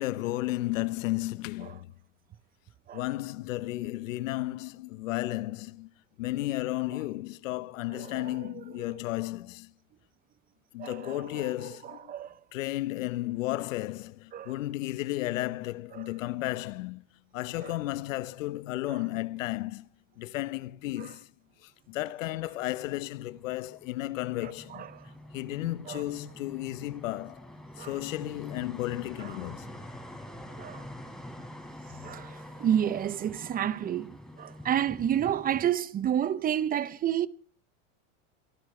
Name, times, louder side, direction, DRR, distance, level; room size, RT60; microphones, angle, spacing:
voice 1, 0.0-1.9 2.9-5.9 6.2-9.7 10.7-12.1 12.5-17.0 17.3-19.9 20.2-21.3 21.6-24.9 25.3-27.5 27.8-29.7, left 17 dB, 85° left, 0.9 m, -33 dB
voice 2, 7.9-8.5 10.8-11.5 12.1-12.3 14.3-14.5 15.9-16.0 17.6-17.7 24.7-25.0 25.9-26.0 27.8-27.9 30.6-30.8 32.0-32.3 32.6-37.3, right 10 dB, 25° right, 0.5 m, -30 dB
sound 1, 22.5-35.6, left 1 dB, ahead, 3.9 m, -46 dB
24.0 x 13.0 x 3.2 m
supercardioid pair, 125°, 38 cm